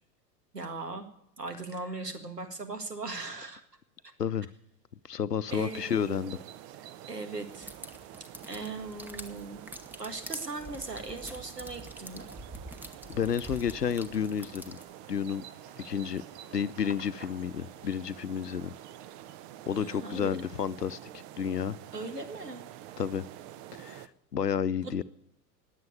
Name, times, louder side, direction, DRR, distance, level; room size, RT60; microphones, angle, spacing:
voice 1, 0.5-1.1 1.4-3.6 5.5-6.3 7.1-7.7 8.5-9.6 10.0-12.4 19.7-20.4 21.9-22.6 24.8-25.0, right 3 dB, 85° right, 7 dB, 1.9 m, -39 dB
voice 2, 5.1-6.4 13.1-14.8 15.1-15.4 15.8-16.2 16.5-18.7 19.7-21.8 23.0-23.3 23.8-24.0 24.3-25.0, left 8 dB, 90° left, 17 dB, 0.6 m, -31 dB
sound 1, 5.5-24.1, right 12 dB, 45° right, 0.9 m, -48 dB
sound 2, 6.8-20.2, right 2 dB, 20° right, 2.9 m, -59 dB
sound 3, 7.5-14.9, right 1 dB, 5° right, 1.1 m, -46 dB
20.0 x 7.6 x 9.6 m, 0.77 s
figure-of-eight pair, 80°, 47 cm